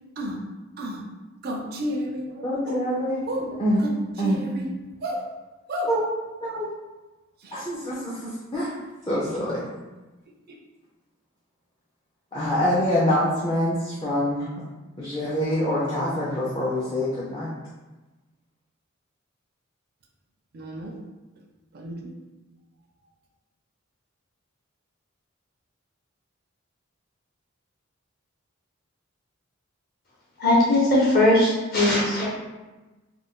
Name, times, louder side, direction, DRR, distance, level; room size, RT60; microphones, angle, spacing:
voice 1, 1.4-3.0 3.3-4.7 5.0-5.2 5.7-5.9 7.4-7.6 9.2-9.3 20.5-20.9 21.7-22.1, equal, 45° right, 1 dB, 0.4 m, -32 dB
voice 2, 2.4-3.2 3.6-3.8 4.2-4.4 5.9-6.0 6.4-6.7 7.5-8.7 9.1-9.6 12.3-14.5 15.0-17.5, equal, 20° left, -7 dB, 0.5 m, -25 dB
voice 3, 30.4-32.3, left 1 dB, 45° left, -6 dB, 0.9 m, -19 dB
2.5 x 2.2 x 3.6 m, 1.1 s
head